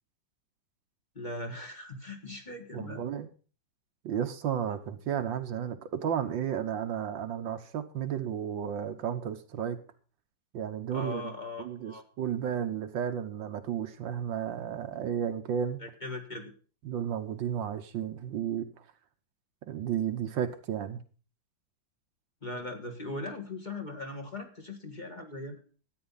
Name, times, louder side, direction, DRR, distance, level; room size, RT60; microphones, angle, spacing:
voice 1, 1.2-3.0 10.9-12.0 15.8-16.5 22.4-25.6, left 2 dB, 25° left, 1.8 m, -39 dB
voice 2, 2.7-3.3 4.0-9.8 10.5-11.3 11.6-15.8 16.8-18.7 19.7-21.0, right 9 dB, 85° right, 1.8 m, -33 dB
13.0 x 9.3 x 5.6 m
omnidirectional pair, 2.0 m